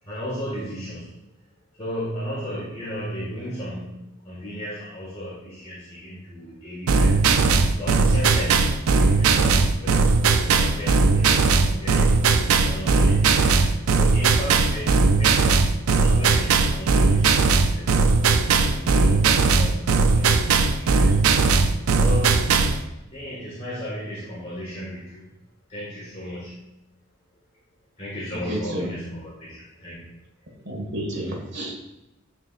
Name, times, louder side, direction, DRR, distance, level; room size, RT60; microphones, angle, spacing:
voice 1, 0.0-1.2 1.7-7.1 7.7-10.0 10.3-12.3 12.6-18.1 18.7-21.2 22.0-22.6 23.1-25.3 25.7-26.6 28.0-30.2, equal, 30° left, -8 dB, 1.8 m, -35 dB
sound 1, 6.9-22.8, right 4 dB, 90° right, 0.5 m, -18 dB
voice 2, 28.3-28.9 30.6-31.7, right 1 dB, 55° right, -1 dB, 1.7 m, -30 dB
9.4 x 4.6 x 2.5 m, 0.91 s
head